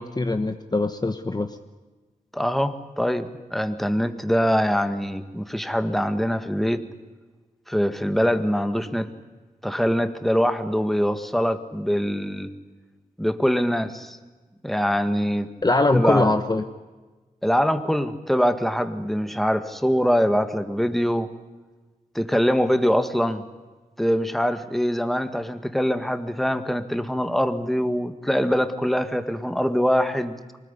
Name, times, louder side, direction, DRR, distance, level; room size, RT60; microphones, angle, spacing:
voice 1, 0.0-1.5 15.6-16.6, left 2 dB, 25° left, 8 dB, 1.1 m, -22 dB
voice 2, 2.3-6.8 7.7-9.1 9.6-12.5 13.2-14.2 14.6-15.5 15.9-16.3 17.4-21.3 22.1-23.4 24.0-30.3, equal, ahead, 9 dB, 1.6 m, -23 dB
24.5 x 20.0 x 9.9 m, 1.3 s
wide cardioid pair, 110°, 15 cm